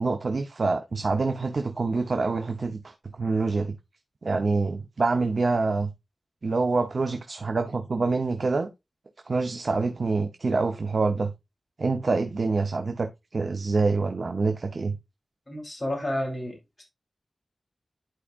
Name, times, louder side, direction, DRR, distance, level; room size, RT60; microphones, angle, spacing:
voice 1, 0.0-2.9 3.2-3.7 4.2-5.9 6.4-8.7 9.3-11.3 11.8-15.0, right 3 dB, 65° right, 0.9 m, -26 dB
voice 2, 15.5-16.8, left 1 dB, 25° left, 4.2 m, -31 dB
11.5 x 4.9 x 2.5 m
wide cardioid pair, 75°, 0 cm